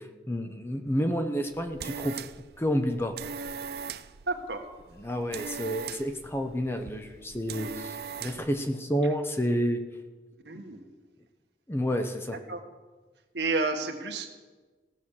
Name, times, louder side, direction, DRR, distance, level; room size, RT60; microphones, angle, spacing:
voice 1, 0.0-2.2 2.6-3.1 5.0-9.8 11.7-12.4, equal, 15° left, 6 dB, 0.7 m, -29 dB
sound 1, 1.4-8.6, right 6 dB, 60° right, 0.5 m, -40 dB
voice 2, 4.3-4.6 10.4-10.8 12.5-12.6 13.3-14.3, right 3 dB, 75° right, 3 dB, 1.5 m, -30 dB
16.5 x 6.3 x 7.2 m, 1.3 s
head